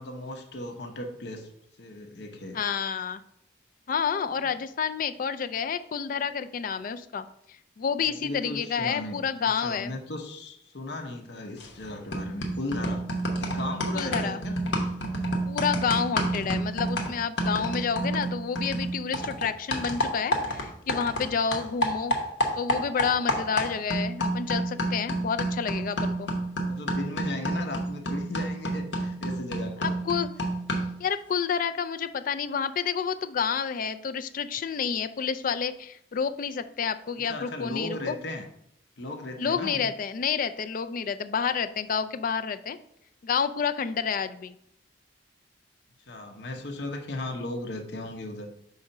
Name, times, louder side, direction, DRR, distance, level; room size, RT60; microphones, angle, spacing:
voice 1, 0.0-1.5 1.8-2.6 4.4-4.5 8.0-13.1 13.4-14.6 26.7-30.0 37.2-38.5 39.0-39.9 46.1-48.5, left 2 dB, 65° left, 5 dB, 0.8 m, -36 dB
voice 2, 2.5-3.2 3.9-10.0 13.9-14.4 15.5-22.1 22.6-26.3 29.8-30.3 31.0-38.2 39.4-42.8 43.2-44.5, left 6 dB, 50° left, 11 dB, 0.4 m, -29 dB
sound 1, 11.6-11.8 12.1-21.3 21.5-31.0, right 1 dB, 80° left, 1.1 m, -29 dB
4.8 x 3.9 x 5.4 m, 0.73 s
head